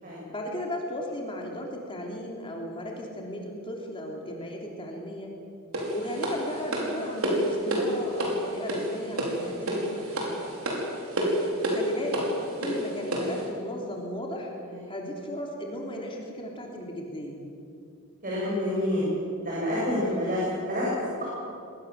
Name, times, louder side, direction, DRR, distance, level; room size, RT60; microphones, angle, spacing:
voice 1, 0.3-5.3 5.9-10.5 11.6-12.3 12.6-14.5 14.9-17.4, equal, 25° left, 0 dB, 3.1 m, -35 dB
sound 1, 5.7-13.4, right 1 dB, 70° right, 5.2 m, -29 dB
voice 2, 18.2-19.1 19.4-21.2, left 1 dB, 40° right, -6 dB, 7.1 m, -28 dB
24.0 x 19.5 x 7.4 m, 2.6 s
head